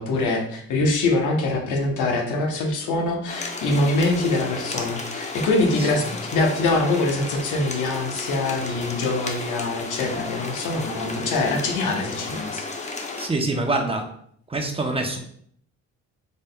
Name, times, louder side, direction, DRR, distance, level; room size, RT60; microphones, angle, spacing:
voice 1, 0.0-12.9, left 2 dB, 85° left, 1 dB, 0.9 m, -24 dB
sound 1, 3.3-13.3, left 3 dB, 25° left, 0.7 m, -33 dB
voice 2, 13.2-14.1 14.5-15.2, right 2 dB, 20° right, 3 dB, 0.7 m, -25 dB
4.1 x 3.5 x 2.2 m, 0.64 s
cardioid pair, 90°, 30 cm